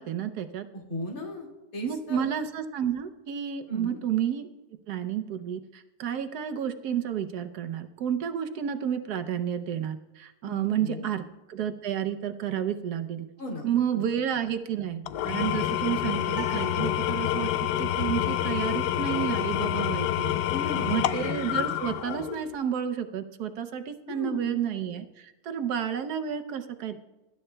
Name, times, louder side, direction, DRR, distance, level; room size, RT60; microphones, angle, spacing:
voice 1, 0.0-0.7 1.8-4.5 4.9-13.3 13.6-17.5 17.8-20.3 20.8-27.0, right 9 dB, 70° right, 8 dB, 1.2 m, -31 dB
voice 2, 0.7-1.5 1.7-2.3 3.7-4.0 10.4-11.1 13.4-14.0 20.5-20.9 24.1-24.6, left 2 dB, 55° left, -1 dB, 2.6 m, -36 dB
Engine / Tools, 15.1-22.5, left 11 dB, 75° left, 1.1 m, -28 dB
sound 1, 16.3-17.8, right 1 dB, 10° left, 5.4 m, -43 dB
23.5 x 12.0 x 2.2 m, 1.1 s
omnidirectional pair, 1.8 m